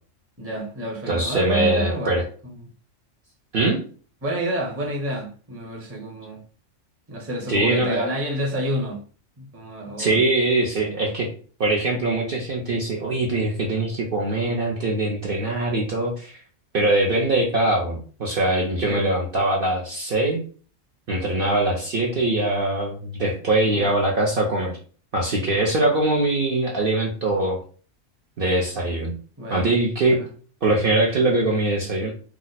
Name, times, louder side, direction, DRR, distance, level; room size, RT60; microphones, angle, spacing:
voice 1, 0.4-2.2 2.4-2.6 4.2-6.4 7.1-9.0 9.4-10.2 10.8-11.1 18.8-19.1 23.7-23.9 29.4-29.7 30.1-30.3, right 1 dB, 15° right, 0.6 m, -29 dB
voice 2, 1.1-2.2 3.5-3.8 7.5-8.1 10.0-11.3 11.6-16.4 16.7-20.4 21.1-24.8 25.1-27.6 28.4-29.2 29.5-30.2 30.6-32.1, right 2 dB, 55° right, 0.7 m, -22 dB
2.9 x 2.1 x 3.9 m
omnidirectional pair, 1.4 m